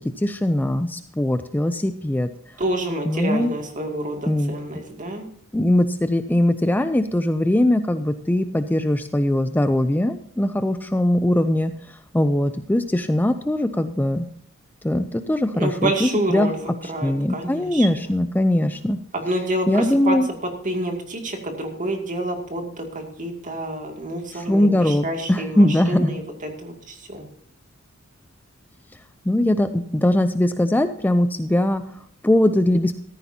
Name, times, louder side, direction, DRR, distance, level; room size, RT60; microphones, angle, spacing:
voice 1, 0.2-2.3 3.1-3.5 4.3-4.5 5.5-14.3 14.8-16.5 16.8-19.0 19.7-20.3 24.3-26.2 29.2-33.0, left 1 dB, 10° left, 10 dB, 0.4 m, -21 dB
voice 2, 2.6-5.2 15.6-17.9 19.1-20.2 20.6-22.8 23.2-26.2 26.6-27.2, right 1 dB, 40° right, 3 dB, 2.4 m, -28 dB
14.5 x 14.0 x 2.8 m, 0.67 s
head